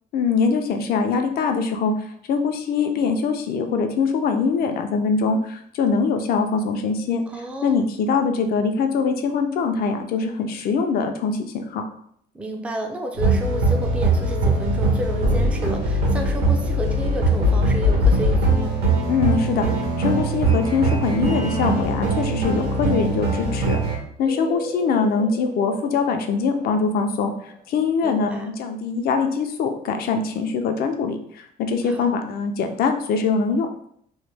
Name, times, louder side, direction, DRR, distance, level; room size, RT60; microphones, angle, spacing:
voice 1, 0.1-1.9 2.3-7.2 7.6-11.8 19.1-19.7 20.0-23.8 24.2-27.3 27.7-33.7, left 5 dB, 65° left, 5 dB, 0.5 m, -23 dB
voice 2, 7.3-7.8 12.3-18.9 24.2-24.6 28.0-28.6 31.8-32.1, right 1 dB, 5° right, 3 dB, 0.4 m, -31 dB
sound 1, 13.2-24.0, right 1 dB, 75° right, 1.0 m, -21 dB
sound 2, 24.2-27.8, right 2 dB, 55° right, 0.7 m, -37 dB
3.1 x 2.1 x 3.3 m, 0.66 s
cardioid pair, 110°, 17 cm